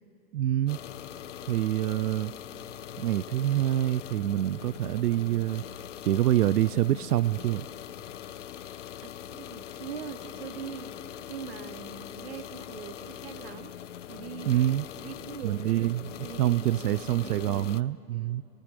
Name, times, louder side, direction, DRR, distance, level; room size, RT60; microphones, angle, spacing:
voice 1, 0.3-0.8 1.5-2.3 3.0-5.6 6.0-7.7 14.5-14.9 15.4-18.4, right 13 dB, 85° right, 19 dB, 0.6 m, -26 dB
sound 1, 0.7-17.8, left 11 dB, 55° left, 0.5 m, -42 dB
voice 2, 9.0-11.0 11.3-13.7 14.1-14.5 15.0-15.9 16.2-17.7, right 7 dB, 45° right, 11 dB, 1.1 m, -42 dB
sound 2, 9.3-16.4, left 7 dB, 30° left, 1.5 m, -59 dB
29.5 x 19.0 x 6.5 m, 2.8 s
hypercardioid pair, 180°, 44 cm